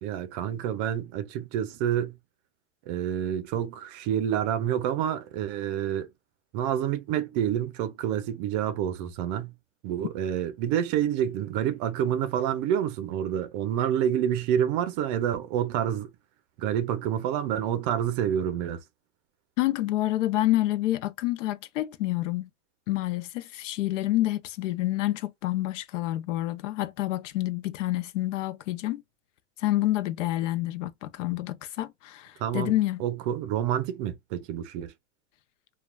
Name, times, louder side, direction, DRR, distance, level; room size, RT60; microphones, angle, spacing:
voice 1, 0.0-2.2 2.9-6.1 6.5-9.5 9.8-16.1 16.6-18.8 32.4-32.7 33.0-34.9, right 10 dB, 35° right, 0.5 m, -28 dB
voice 2, 19.6-22.5 22.9-29.0 29.6-33.0, left 16 dB, 85° left, 0.6 m, -28 dB
3.1 x 2.2 x 2.2 m
supercardioid pair, 165°, 36 cm